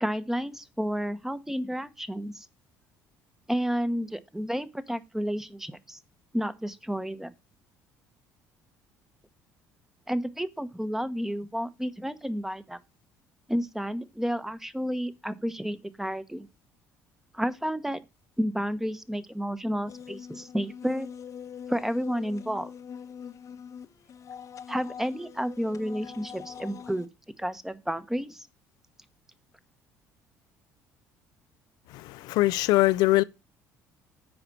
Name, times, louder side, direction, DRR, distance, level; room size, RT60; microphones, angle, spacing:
voice 1, 0.0-2.5 3.5-6.0 6.3-7.3 10.1-12.8 13.5-16.5 17.3-18.0 18.4-21.1 21.7-22.7 24.7-27.1 27.4-28.5, equal, 5° right, 1.0 m, -31 dB
sound 1, 19.9-27.1, left 7 dB, 50° left, 0.9 m, -43 dB
voice 2, 31.9-33.2, left 18 dB, 70° left, 0.4 m, -22 dB
8.8 x 5.0 x 6.0 m
hypercardioid pair, 65°, 7 cm